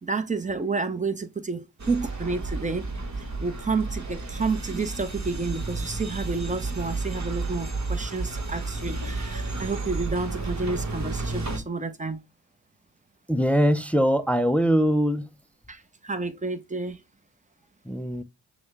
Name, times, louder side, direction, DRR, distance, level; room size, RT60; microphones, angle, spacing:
voice 1, 0.0-2.9 3.4-12.2 15.7-17.0, right 4 dB, 15° right, 0.9 m, -30 dB
sound 1, 1.8-11.6, right 3 dB, 40° right, 1.6 m, -32 dB
voice 2, 13.3-15.3 17.9-18.2, equal, 5° left, 0.5 m, -22 dB
6.1 x 2.4 x 3.3 m
supercardioid pair, 50°, 42 cm